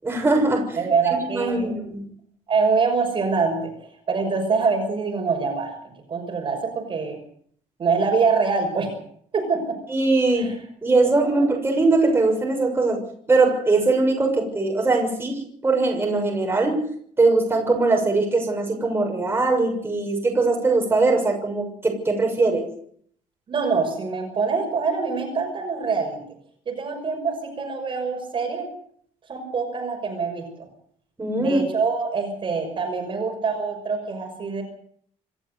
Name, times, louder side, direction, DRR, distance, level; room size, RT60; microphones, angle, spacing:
voice 1, 0.0-0.9 1.1-2.0 9.9-10.6 10.8-13.0 13.3-16.8 17.2-22.6 31.2-31.6, right 3 dB, 15° right, 1 dB, 6.7 m, -21 dB
voice 2, 0.8-1.7 2.5-3.7 4.1-7.2 7.8-8.9 9.3-9.8 10.3-10.5 23.5-26.2 26.7-28.7 29.3-30.7 31.4-34.6, right 5 dB, 35° right, 3 dB, 6.2 m, -24 dB
27.0 x 14.0 x 8.0 m, 0.63 s
cardioid pair, 160°, 15 cm